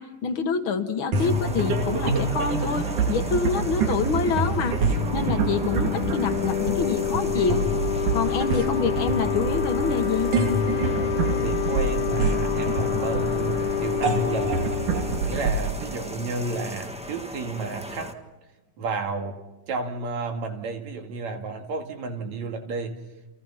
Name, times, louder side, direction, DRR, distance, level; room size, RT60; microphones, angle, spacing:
voice 1, 0.0-4.8 5.1-7.7 8.1-10.3, left 5 dB, 50° left, 8 dB, 1.9 m, -27 dB
sound 1, 1.1-18.1, equal, 5° right, 0.5 m, -38 dB
sound 2, 1.1-16.8, right 3 dB, 85° right, 3.9 m, -26 dB
sound 3, 4.9-16.3, left 11 dB, 80° left, 2.4 m, -29 dB
voice 2, 11.2-14.5 15.2-18.1 18.8-19.4 19.7-23.0, right 3 dB, 65° right, 5 dB, 3.4 m, -32 dB
29.5 x 28.5 x 5.8 m, 1.1 s
omnidirectional pair, 3.4 m